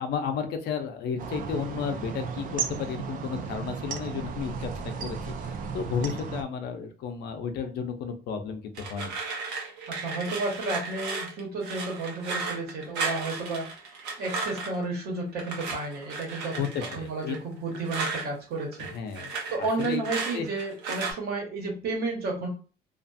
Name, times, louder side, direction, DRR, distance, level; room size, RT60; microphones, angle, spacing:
voice 1, 0.0-9.2 16.6-17.4 18.8-20.0 20.3-20.5, left 6 dB, 70° left, 6 dB, 0.6 m, -33 dB
sound 1, 1.2-6.4, right 5 dB, 55° right, 0.5 m, -34 dB
sound 2, 8.7-14.8 15.4-18.3 18.6-21.1, right 4 dB, 90° right, 0.8 m, -35 dB
voice 2, 9.9-16.6 16.9-18.9 19.5-22.5, right 3 dB, 70° right, 0 dB, 1.2 m, -32 dB
2.5 x 2.3 x 2.6 m, 0.37 s
cardioid pair, 110°, 17 cm